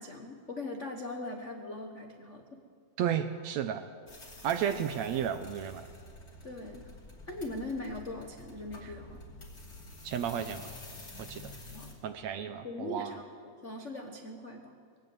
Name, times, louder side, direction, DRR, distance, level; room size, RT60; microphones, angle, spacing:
voice 1, 0.0-2.6 6.4-6.9 7.3-9.2 11.7-12.0 12.3-14.7, left 2 dB, 65° left, 3 dB, 0.7 m, -41 dB
voice 2, 3.0-3.8 4.4-5.9 10.0-10.7 11.3-11.5 12.0-13.2, right 9 dB, 75° right, 9 dB, 1.7 m, -33 dB
sound 1, 4.1-11.9, left 2 dB, 30° left, 3.2 m, -49 dB
22.0 x 18.0 x 8.1 m, 2.1 s
omnidirectional pair, 3.8 m